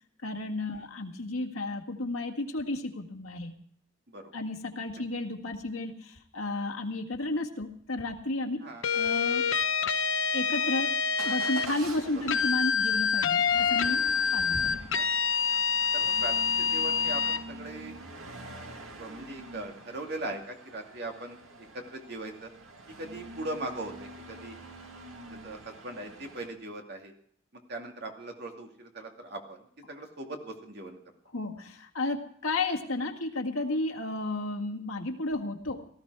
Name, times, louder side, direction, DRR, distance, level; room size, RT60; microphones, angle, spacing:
voice 1, 0.2-3.5 4.3-8.7 8.9-9.4 10.3-14.8 31.3-35.9, left 2 dB, 80° left, 2 dB, 1.9 m, -33 dB
sound 1, 8.8-11.7 12.3-17.4, left 6 dB, 65° left, 0.8 m, -27 dB
Motor vehicle (road) / Engine starting / Accelerating revving vroom, 11.2-26.5, right 2 dB, 85° right, 2.1 m, -46 dB
voice 2, 15.9-17.9 19.0-22.5 23.0-24.5 25.3-27.1 27.7-31.0, right 2 dB, 50° right, 2 dB, 2.4 m, -40 dB
18.0 x 14.0 x 4.8 m, 0.63 s
head